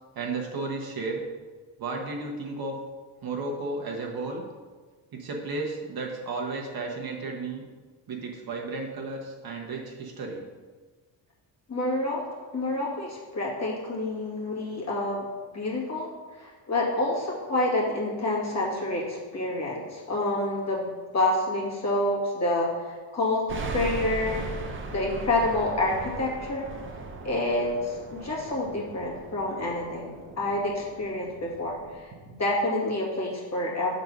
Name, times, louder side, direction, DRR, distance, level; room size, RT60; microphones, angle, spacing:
voice 1, 0.1-1.2 1.8-2.8 3.2-4.4 5.1-7.6 8.1-10.4 32.3-32.4, right 3 dB, 45° right, 0 dB, 1.1 m, -33 dB
voice 2, 11.7-12.2 12.5-15.3 15.5-16.1 16.4-24.4 24.9-26.7 27.2-34.0, left 2 dB, 30° left, -4 dB, 2.0 m, -28 dB
sound 1, 23.5-32.0, right 3 dB, 25° right, 0.7 m, -38 dB
6.6 x 4.0 x 6.0 m, 1.4 s
cardioid pair, 130°, 50 cm